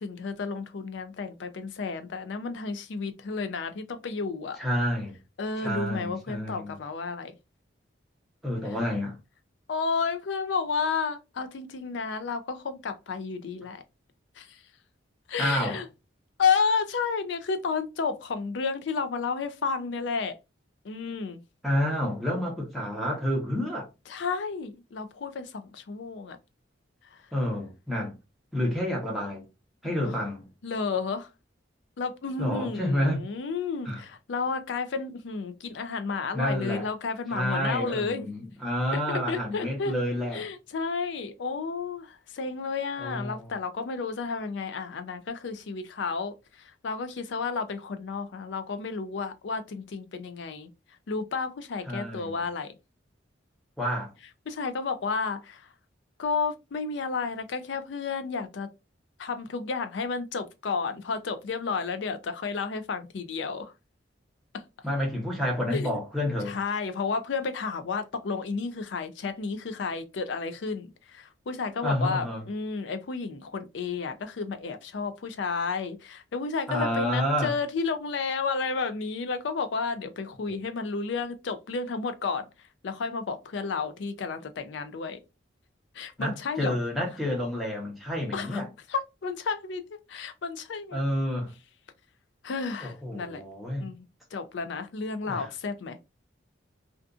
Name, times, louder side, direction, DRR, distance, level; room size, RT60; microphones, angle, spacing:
voice 1, 0.0-4.6 5.4-7.3 9.7-13.8 14.4-14.6 15.3-15.9 16.4-20.4 20.8-21.4 24.1-26.4 27.1-27.2 30.0-30.1 30.6-31.3 32.0-38.3 38.9-39.0 39.3-39.9 40.3-50.7 51.1-52.7 54.5-55.7 56.2-58.7 59.2-63.7 64.5-64.6 65.7-66.0 66.5-82.4 82.8-85.2 85.9-86.8 88.3-88.6 88.9-89.8 90.1-91.0 92.4-93.4 93.8-96.0, left 5 dB, 65° left, 0.4 m, -32 dB
voice 2, 4.6-5.2 5.6-6.8 8.4-9.2 15.4-15.8 21.6-23.9 27.3-28.2 28.5-29.4 29.8-30.5 32.4-33.2 33.8-34.0 36.3-36.9 37.3-40.5 43.0-43.5 51.9-52.4 53.8-54.1 64.8-66.6 71.8-72.4 76.7-77.5 80.5-80.6 86.2-88.7 90.9-91.5 92.8-93.9 95.3-95.5, equal, ahead, 0.8 m, -29 dB
2.5 x 2.4 x 2.3 m
head